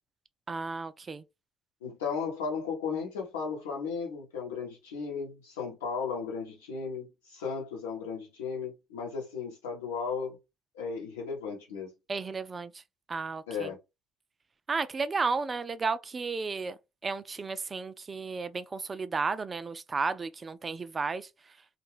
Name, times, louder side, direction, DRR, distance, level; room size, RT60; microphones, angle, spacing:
voice 1, 0.5-1.2 12.1-12.8 13.1-13.7 14.7-21.6, right 4 dB, 30° right, 0.3 m, -33 dB
voice 2, 1.8-10.4 10.7-11.9 13.5-13.8, left 5 dB, 80° left, 1.1 m, -35 dB
2.5 x 2.2 x 3.2 m
hypercardioid pair, 55°, 0 cm